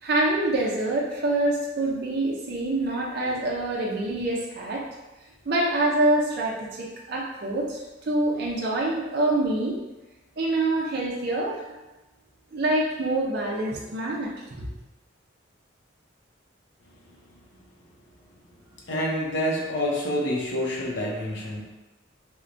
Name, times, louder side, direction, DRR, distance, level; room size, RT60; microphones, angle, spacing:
voice 1, 0.0-4.8 5.5-9.8 10.4-11.6 12.5-14.7, right 2 dB, 55° right, -4 dB, 0.5 m, -26 dB
voice 2, 18.9-21.6, left 1 dB, 65° left, -2 dB, 0.7 m, -27 dB
4.4 x 2.1 x 2.5 m, 1.1 s
head